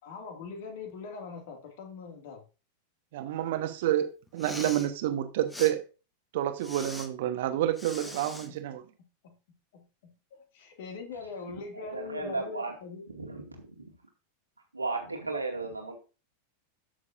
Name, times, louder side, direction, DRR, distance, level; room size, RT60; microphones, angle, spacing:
voice 1, 0.0-2.4 9.2-9.3 9.7-13.0, left 5 dB, 55° left, 2.4 m, -42 dB
voice 2, 3.1-5.8 6.3-8.8, right 12 dB, 55° right, 1.2 m, -29 dB
Respiratory sounds, 4.3-4.9 5.5-5.7 6.6-7.1 7.8-8.5, left 1 dB, 10° left, 1.4 m, -41 dB
voice 3, 11.7-12.7 13.1-13.9 14.7-16.0, right 3 dB, 85° right, 2.4 m, -35 dB
12.5 x 6.9 x 2.7 m
figure-of-eight pair, 90°, 0 cm